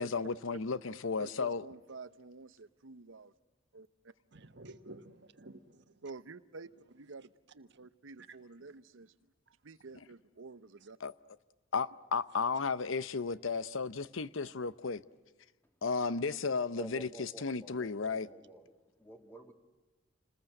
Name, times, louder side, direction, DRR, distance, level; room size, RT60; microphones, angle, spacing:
voice 1, 0.0-1.7 11.0-11.1 11.7-15.0 15.8-18.3, left 4 dB, 80° left, 0.8 m, -34 dB
voice 2, 1.2-3.3 3.7-4.1 4.6-5.0 6.0-9.1 9.6-11.0 14.4-14.6, right 3 dB, 75° right, 0.8 m, -50 dB
voice 3, 4.3-6.0 8.3-8.8 9.5-9.6 10.8-10.9, right 2 dB, 60° right, 1.4 m, -53 dB
voice 4, 16.7-18.7 19.0-19.5, right 1 dB, 10° left, 2.2 m, -50 dB
29.0 x 21.0 x 7.8 m
head